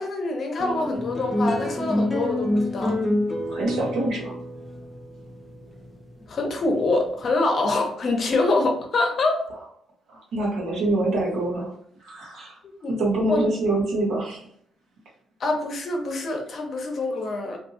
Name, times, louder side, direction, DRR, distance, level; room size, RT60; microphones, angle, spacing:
voice 1, 0.0-3.0 6.3-9.4 12.8-13.0 13.3-13.5 15.4-17.6, left 2 dB, 50° left, 2 dB, 0.8 m, -25 dB
sound 1, 0.6-7.2, left 1 dB, 10° left, 0.6 m, -27 dB
voice 2, 3.5-4.3 10.1-11.7 12.0-12.6 12.9-14.4, right 2 dB, 75° right, -2 dB, 1.1 m, -25 dB
2.7 x 2.6 x 2.6 m, 0.68 s
cardioid pair, 90°, 0 cm